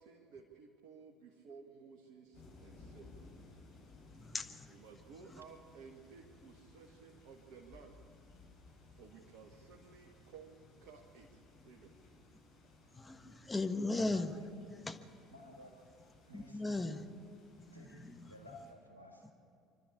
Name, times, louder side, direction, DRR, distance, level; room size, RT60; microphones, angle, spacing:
voice 1, 0.0-3.1 4.7-8.2 8.9-11.4 11.6-12.0, right 5 dB, 60° right, 1 dB, 1.7 m, -56 dB
sound 1, 2.3-18.7, left 3 dB, 60° left, 4.7 m, -60 dB
voice 2, 4.2-4.7 12.9-14.4 14.7-15.0 16.3-17.1 17.6-18.1, left 2 dB, 15° left, 7 dB, 1.4 m, -37 dB
voice 3, 14.1-14.5 15.3-15.8 16.3-16.6 17.7-19.3, left 1 dB, 90° right, 2 dB, 2.4 m, -55 dB
25.5 x 12.5 x 8.5 m, 2.7 s
figure-of-eight pair, 60°, 0 cm